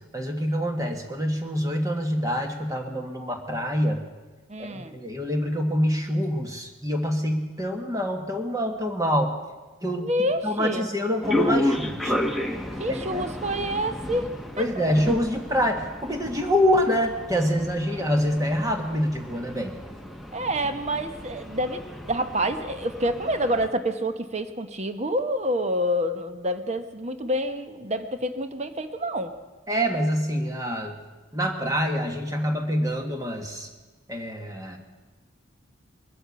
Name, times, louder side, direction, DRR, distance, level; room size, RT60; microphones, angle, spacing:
voice 1, 0.1-4.0 4.6-9.3 9.8-10.1 10.4-12.1 13.1-13.2 14.6-19.7 29.7-30.9 31.3-33.7 34.1-34.8, equal, 15° right, 3 dB, 1.5 m, -26 dB
voice 2, 4.5-4.9 9.9-10.9 12.8-14.6 20.3-29.4, equal, 30° right, 8 dB, 0.9 m, -28 dB
sound 1, 11.2-23.7, left 1 dB, ahead, 1.0 m, -32 dB
21.5 x 7.9 x 8.1 m, 1.2 s
head